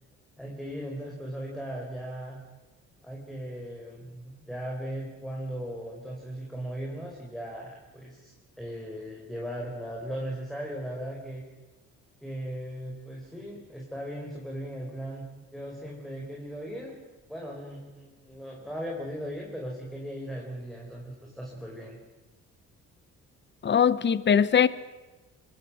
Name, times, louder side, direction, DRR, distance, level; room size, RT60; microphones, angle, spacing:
voice 1, 0.4-2.4 3.0-11.4 12.2-16.9 17.3-22.0, equal, ahead, -2 dB, 4.9 m, -38 dB
voice 2, 23.6-24.7, left 7 dB, 35° left, 17 dB, 1.0 m, -21 dB
25.5 x 21.5 x 6.4 m, 1.2 s
cardioid pair, 90°, 30 cm